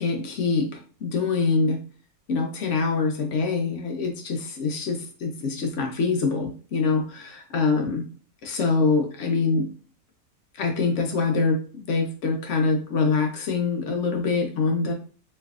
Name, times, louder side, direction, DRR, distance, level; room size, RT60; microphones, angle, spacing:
voice 1, 0.0-1.8 2.3-8.0 8.4-9.7 10.5-14.9, left 4 dB, 60° left, 3 dB, 0.9 m, -24 dB
3.3 x 3.1 x 2.3 m, 0.38 s
omnidirectional pair, 1.5 m